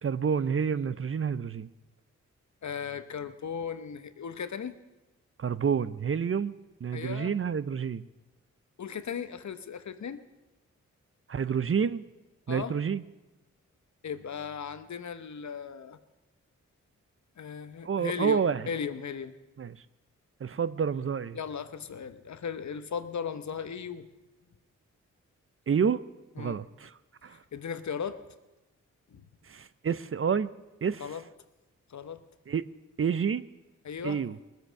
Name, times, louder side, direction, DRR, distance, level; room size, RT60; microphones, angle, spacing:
voice 1, 0.0-1.7 5.4-6.5 6.8-8.0 11.3-12.0 12.5-13.0 17.8-18.7 19.6-19.8 20.4-21.4 25.7-26.0 26.4-26.9 27.2-27.4 29.5-30.5 30.8-31.1 32.5-32.6 33.0-33.4 34.0-34.4, right 6 dB, 40° right, 15 dB, 0.6 m, -28 dB
voice 2, 2.6-4.8 6.9-7.3 8.8-10.2 12.5-12.7 14.0-16.0 17.4-19.3 21.3-24.1 26.4-26.6 27.5-28.2 29.1-29.2 31.0-31.2 31.9-32.2 33.8-34.2, left 7 dB, 60° left, 11 dB, 1.0 m, -37 dB
19.5 x 8.2 x 6.4 m, 1.1 s
supercardioid pair, 45°, 32 cm